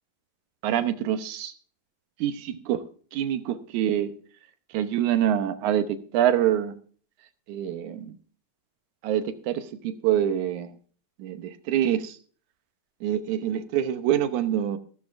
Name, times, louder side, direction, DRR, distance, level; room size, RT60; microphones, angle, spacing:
voice 1, 0.6-1.5 2.2-2.8 3.1-4.1 4.7-6.8 7.5-8.2 9.0-10.8 11.2-12.2 13.0-14.8, right 10 dB, 90° right, 10 dB, 2.4 m, -26 dB
15.5 x 14.0 x 2.5 m, 0.43 s
omnidirectional pair, 3.3 m